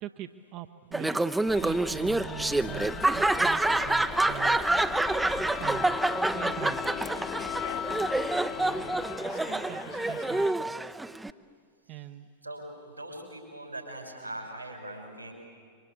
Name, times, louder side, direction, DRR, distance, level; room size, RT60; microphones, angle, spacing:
voice 1, 0.0-1.2 1.5-5.0 5.6-6.0 6.3-7.1 8.5-10.8 11.9-12.3, right 12 dB, 40° right, 7 dB, 0.9 m, -43 dB
Laughter, 0.9-11.3, right 2 dB, 5° right, 0.7 m, -27 dB
sound 1, 1.5-9.2, left 8 dB, 30° left, 1.2 m, -38 dB
sound 2, 3.2-10.5, left 11 dB, 55° left, 0.9 m, -44 dB
voice 2, 12.4-15.3, right 1 dB, 90° right, 2 dB, 6.0 m, -41 dB
27.0 x 25.0 x 8.7 m, 2.1 s
figure-of-eight pair, 90°, 0 cm